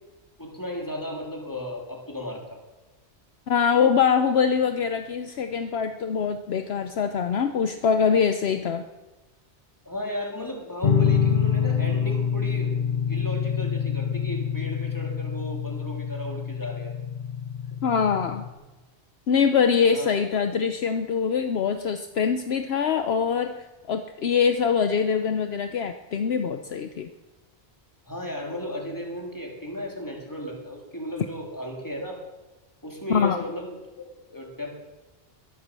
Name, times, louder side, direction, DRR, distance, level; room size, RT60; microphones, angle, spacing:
voice 1, 0.4-2.6 9.8-16.9 19.9-20.1 28.1-32.2 32.8-34.7, left 1 dB, 15° left, 0 dB, 3.3 m, -35 dB
voice 2, 3.5-8.8 17.8-18.4 19.3-27.1 33.1-33.4, left 6 dB, 65° left, 8 dB, 1.0 m, -23 dB
sound 1, 10.8-18.5, left 7 dB, 45° left, 1.4 m, -26 dB
22.0 x 8.4 x 7.5 m, 1.1 s
omnidirectional pair, 1.2 m